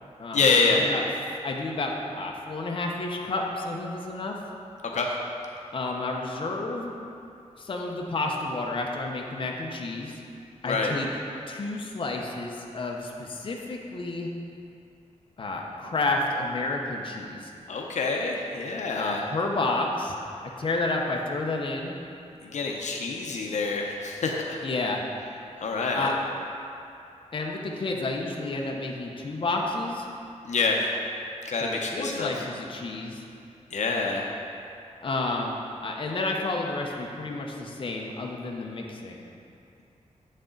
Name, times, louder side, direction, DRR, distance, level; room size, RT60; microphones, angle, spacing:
voice 1, 0.3-0.9 4.9-5.1 10.6-10.9 17.7-19.3 22.4-24.6 25.6-26.1 30.4-30.8 31.4-32.3 33.7-34.3, left 4 dB, 75° left, 0 dB, 0.7 m, -26 dB
voice 2, 1.4-4.4 5.7-6.9 7.6-10.1 10.6-11.1 11.5-14.3 15.4-17.5 18.9-20.2 20.6-22.0 24.6-25.0 25.9-26.2 27.3-30.1 31.6-33.2 35.0-39.2, left 2 dB, 45° left, 0 dB, 0.8 m, -30 dB
8.2 x 6.5 x 3.9 m, 2.6 s
wide cardioid pair, 135°, 12 cm